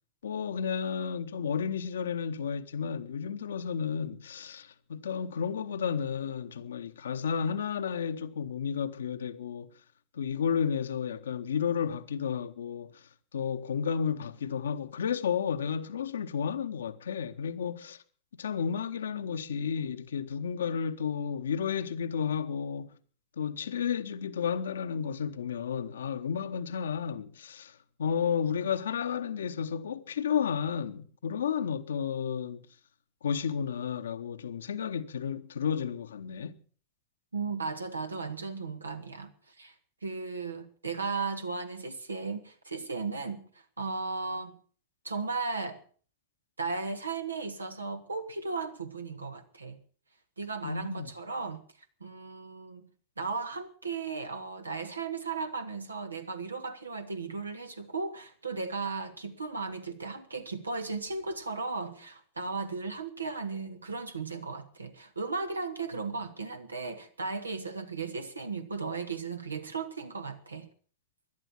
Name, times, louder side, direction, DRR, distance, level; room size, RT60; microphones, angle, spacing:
voice 1, 0.2-9.7 10.1-13.0 13.3-18.0 18.4-22.9 23.4-32.7 33.2-36.6 50.6-51.1, left 7 dB, 65° left, 0.9 m, -32 dB
voice 2, 37.3-39.7 40.0-43.4 43.8-44.6 45.0-45.8 46.6-49.8 50.4-51.6 52.0-52.8 53.2-70.7, right 4 dB, 80° right, 1.6 m, -36 dB
17.0 x 12.0 x 6.1 m
figure-of-eight pair, 90°, 0 cm